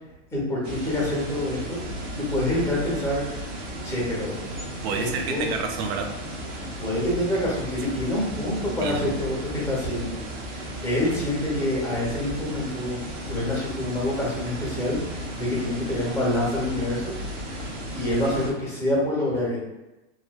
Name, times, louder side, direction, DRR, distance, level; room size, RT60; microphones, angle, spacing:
voice 1, 0.3-1.8 2.1-3.2 3.8-4.4 5.3-5.4 6.8-9.4 9.6-10.2 10.5-13.0 13.3-17.1 17.4-17.6 17.9-19.6, left 1 dB, 10° left, -6 dB, 0.8 m, -26 dB
sound 1, 0.6-18.5, equal, 90° right, 0.8 m, -35 dB
voice 2, 4.8-6.1 7.8-7.9 8.8-9.4, right 5 dB, 60° right, 4 dB, 0.5 m, -30 dB
3.1 x 2.1 x 2.2 m, 1.0 s
supercardioid pair, 130°, 36 cm